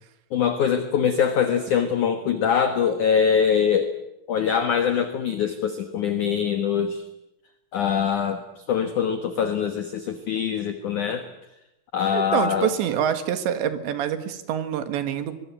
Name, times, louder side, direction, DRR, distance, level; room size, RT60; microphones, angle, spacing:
voice 1, 0.3-3.9 4.3-7.0 7.7-11.3 11.9-12.7, left 7 dB, 65° left, 8 dB, 2.1 m, -23 dB
voice 2, 12.1-15.3, right 9 dB, 70° right, 9 dB, 3.8 m, -26 dB
23.5 x 23.5 x 9.2 m, 0.87 s
omnidirectional pair, 5.6 m